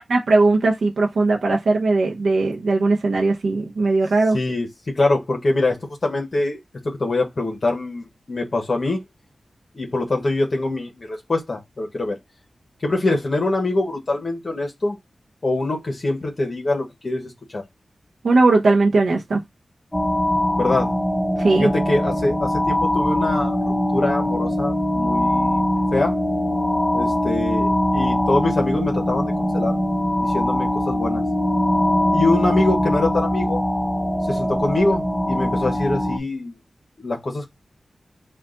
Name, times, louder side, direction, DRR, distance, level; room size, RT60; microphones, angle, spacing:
voice 1, 0.1-4.4 18.2-19.4 21.4-21.7, right 3 dB, 80° right, 0.8 m, -18 dB
voice 2, 4.3-4.7 4.9-6.6 6.8-9.0 9.7-12.2 12.8-15.0 15.4-17.6 20.6-20.9 21.6-25.6 25.9-26.2 26.9-29.8 30.2-31.2 32.1-33.6 34.3-36.5 37.0-37.5, left 2 dB, 55° left, 1.2 m, -24 dB
sound 1, 19.9-36.2, left 1 dB, 20° left, 0.8 m, -22 dB
4.5 x 2.5 x 3.8 m
cardioid pair, 50°, 0 cm